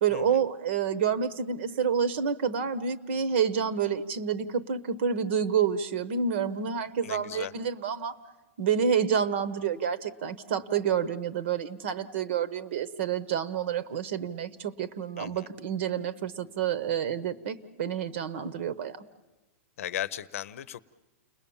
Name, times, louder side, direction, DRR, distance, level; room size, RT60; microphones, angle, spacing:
voice 1, 0.0-8.2 8.6-19.0, right 7 dB, 55° right, 15 dB, 1.1 m, -28 dB
voice 2, 7.0-7.5 15.2-15.5 19.8-20.8, left 11 dB, 70° left, 18 dB, 0.8 m, -36 dB
30.0 x 21.0 x 7.2 m, 1.1 s
supercardioid pair, 165°, 8 cm